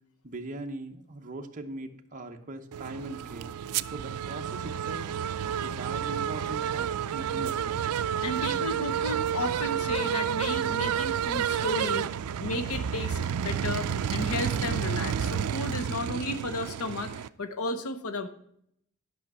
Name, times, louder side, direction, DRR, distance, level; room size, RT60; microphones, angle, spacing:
voice 1, 0.2-5.1 5.6-7.9, right 2 dB, 35° right, 3 dB, 0.9 m, -40 dB
sound 1, 2.7-17.3, right 8 dB, 90° right, 0.4 m, -30 dB
voice 2, 8.2-12.1 12.4-17.1 17.4-18.3, left 2 dB, 85° left, 9 dB, 1.0 m, -33 dB
11.5 x 5.7 x 6.1 m, 0.69 s
head